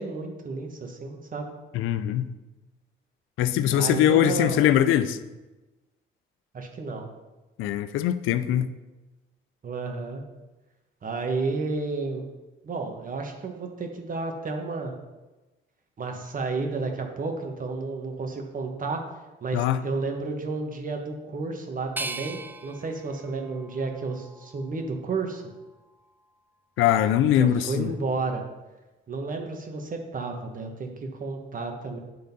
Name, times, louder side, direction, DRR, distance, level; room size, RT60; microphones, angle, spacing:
voice 1, 0.0-1.5 3.7-4.7 6.5-7.1 9.6-10.2 11.0-12.3 12.6-14.9 16.0-19.0 19.4-25.4 27.3-28.4 29.1-32.0, right 3 dB, 45° right, 1.4 m, -31 dB
voice 2, 1.7-2.3 3.4-5.2 7.6-8.7 19.5-19.8 26.8-27.9, left 11 dB, 90° left, 0.5 m, -22 dB
sound 1, 22.0-24.9 25.4-26.3, right 2 dB, 10° right, 0.4 m, -40 dB
9.5 x 3.8 x 5.4 m
cardioid pair, 90°, 20 cm